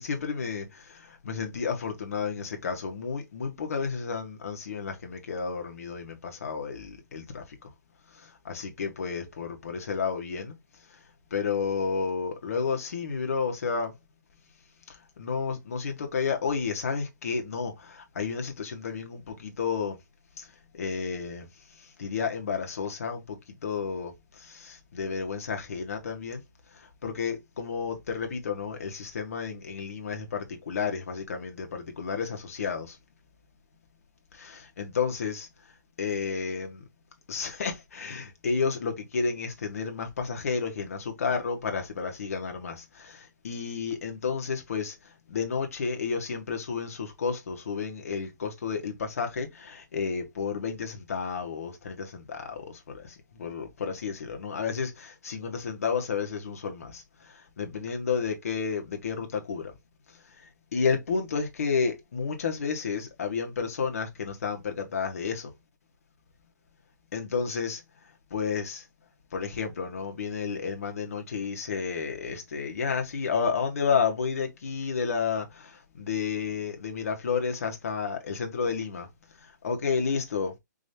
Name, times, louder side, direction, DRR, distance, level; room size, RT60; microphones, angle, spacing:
voice 1, 0.0-7.4 8.2-10.5 11.3-13.9 15.2-20.0 20.4-20.5 20.7-21.4 22.0-26.4 27.0-33.0 34.3-35.5 36.0-36.8 37.3-44.9 45.3-57.0 57.6-59.7 60.7-65.5 67.1-67.8 68.3-68.8 69.3-79.1 79.6-80.5, left 5 dB, 50° left, 1.5 m, -31 dB
5.1 x 3.1 x 2.8 m
hypercardioid pair, 175°, 10 cm